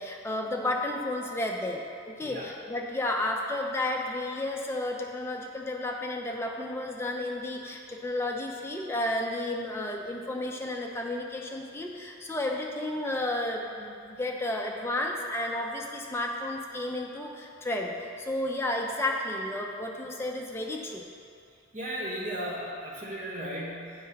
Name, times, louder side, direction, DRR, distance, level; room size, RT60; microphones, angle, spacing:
voice 1, 0.0-21.0, left 1 dB, 10° left, 0 dB, 0.5 m, -32 dB
voice 2, 21.7-24.1, equal, 40° right, -5 dB, 1.2 m, -35 dB
7.8 x 3.2 x 5.6 m, 2.5 s
head